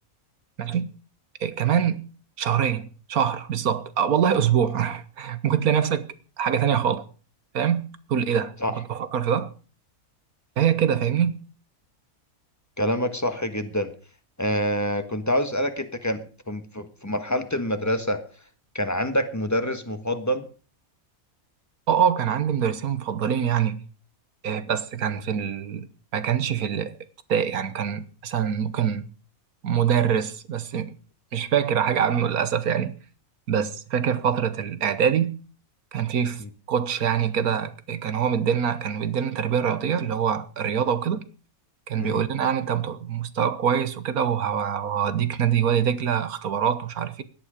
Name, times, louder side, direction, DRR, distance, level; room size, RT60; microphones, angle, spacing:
voice 1, 0.6-0.9 1.4-2.1 2.4-7.0 7.5-9.5 10.6-11.4 21.9-23.8 24.4-25.9 26.1-27.0 27.3-29.1 29.6-31.0 31.3-33.0 33.5-35.4 35.9-36.4 36.7-41.2 41.9-47.2, right 8 dB, 85° right, 1.6 m, -24 dB
voice 2, 12.8-13.9 14.4-16.2 16.5-18.2 18.7-20.5 36.4-36.5 42.0-42.2, equal, 10° left, 1.4 m, -26 dB
17.0 x 11.5 x 5.1 m
omnidirectional pair, 1.5 m